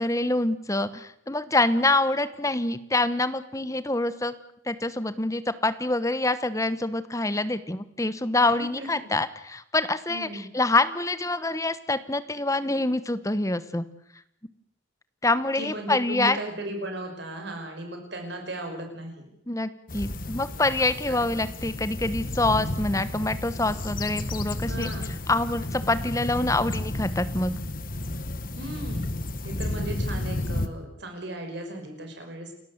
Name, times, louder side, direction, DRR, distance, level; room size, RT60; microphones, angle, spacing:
voice 1, 0.0-4.3 4.7-13.8 15.2-16.4 19.5-24.9 25.3-27.6, left 2 dB, 15° left, 13 dB, 1.1 m, -26 dB
voice 2, 8.4-8.9 10.1-10.5 15.6-19.3 21.1-21.2 24.7-25.2 28.6-29.1 29.4-32.5, right 1 dB, 60° right, 3 dB, 5.8 m, -36 dB
sound 1, 19.9-30.7, left 1 dB, 45° left, 1.4 m, -32 dB
29.5 x 13.0 x 8.0 m, 0.77 s
head